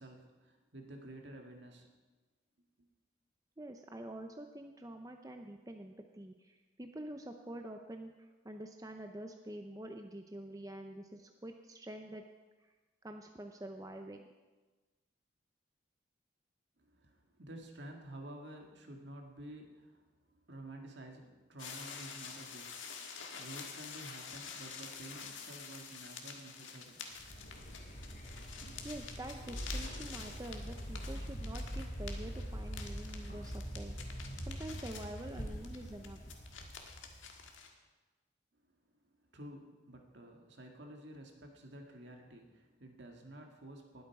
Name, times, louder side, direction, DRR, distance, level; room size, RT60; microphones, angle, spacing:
voice 1, 0.0-1.9 2.8-2.9 16.8-23.0 23.3-27.0 39.2-44.0, right 1 dB, 65° right, 2 dB, 2.0 m, -51 dB
voice 2, 3.6-12.2 12.6-12.7 13.0-14.2 28.8-34.0 34.5-36.3, right 1 dB, 20° right, 4 dB, 0.6 m, -47 dB
sound 1, 21.6-37.7, left 6 dB, 90° left, 1.7 m, -48 dB
Vehicle, 27.1-37.5, equal, 40° left, 3.7 m, -43 dB
20.0 x 8.0 x 4.8 m, 1.2 s
head